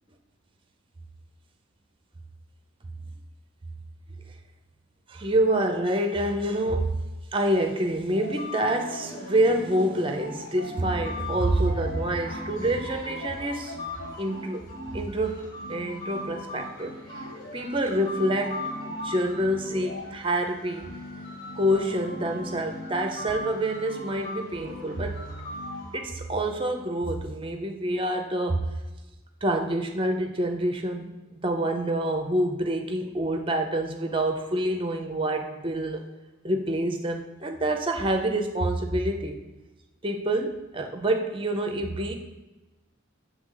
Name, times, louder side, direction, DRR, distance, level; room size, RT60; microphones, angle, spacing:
voice 1, 5.1-7.0 7.3-13.8 14.2-14.6 14.9-16.9 17.5-20.9 21.5-25.2 25.9-28.7 29.4-36.0 36.4-39.4 40.0-42.1, right 1 dB, 25° right, 5 dB, 0.5 m, -27 dB
sound 1, 8.1-26.0, left 1 dB, 50° left, 1.7 m, -38 dB
7.7 x 3.3 x 3.8 m, 1.1 s
head